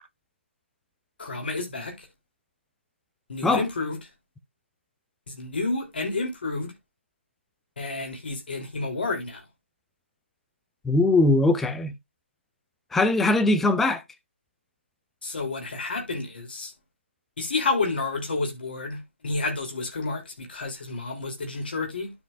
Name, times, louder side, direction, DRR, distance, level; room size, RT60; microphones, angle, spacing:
voice 1, 1.2-2.1 3.3-4.0 5.3-6.7 7.8-9.4 15.2-16.7 17.4-22.1, left 3 dB, 50° left, 2.9 m, -30 dB
voice 2, 10.8-11.9 12.9-14.0, left 2 dB, 5° left, 0.3 m, -21 dB
12.0 x 5.1 x 2.4 m
figure-of-eight pair, 145°, 7 cm